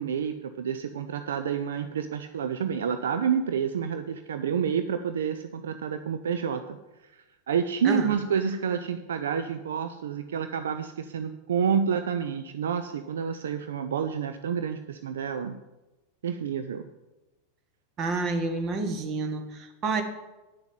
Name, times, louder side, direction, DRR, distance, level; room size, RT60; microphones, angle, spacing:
voice 1, 0.0-6.8 7.0-15.6 16.2-16.9, right 7 dB, 65° right, 9 dB, 0.5 m, -29 dB
voice 2, 7.8-8.1 18.0-20.0, right 3 dB, 35° right, 6 dB, 1.6 m, -29 dB
9.5 x 7.0 x 7.3 m, 1.1 s
figure-of-eight pair, 90°, 0 cm